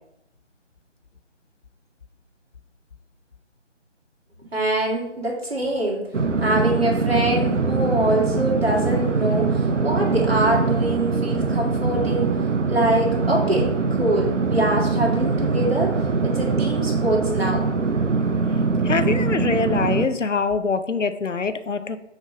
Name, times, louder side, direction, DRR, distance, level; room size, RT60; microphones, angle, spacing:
voice 1, 4.5-6.1 6.4-12.3 12.7-13.7 14.0-16.0 16.2-17.7, right 1 dB, 60° right, -2 dB, 1.9 m, -24 dB
sound 1, 6.1-20.1, right 4 dB, 85° right, 0.7 m, -22 dB
voice 2, 18.8-22.0, left 4 dB, 90° left, 11 dB, 0.6 m, -24 dB
6.5 x 3.1 x 4.9 m, 0.85 s
figure-of-eight pair, 160°, 36 cm